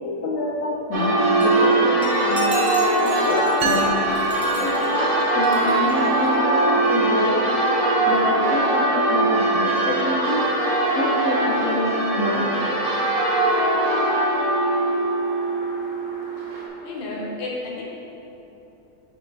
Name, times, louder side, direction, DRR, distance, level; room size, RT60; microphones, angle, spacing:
voice 1, 0.0-2.5 3.0-3.4 3.6-3.8 4.6-7.4 8.1-10.4 10.9-12.6, left 1 dB, 65° left, -4 dB, 1.1 m, -26 dB
Church bell, 0.9-16.7, right 2 dB, 35° right, 0.7 m, -21 dB
sound 1, 1.4-1.7 2.0-6.3, left 1 dB, 5° left, 1.1 m, -37 dB
sound 2, 3.6-5.4, right 4 dB, 65° right, 0.9 m, -30 dB
voice 2, 16.8-17.8, left 2 dB, 40° left, -3 dB, 1.0 m, -31 dB
6.9 x 5.0 x 3.3 m, 3.0 s
omnidirectional pair, 1.6 m